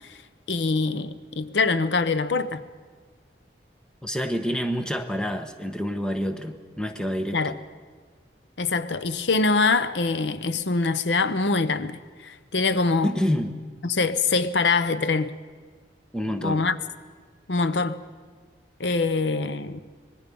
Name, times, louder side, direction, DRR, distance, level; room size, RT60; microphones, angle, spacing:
voice 1, 0.5-2.6 7.3-7.6 8.6-13.1 13.8-15.3 16.4-16.8 17.5-18.0 18.8-19.8, left 4 dB, 80° left, 0.8 m, -24 dB
voice 2, 4.0-7.6 13.0-13.6 16.1-16.6, equal, 5° left, 1.0 m, -28 dB
25.0 x 20.5 x 5.4 m
head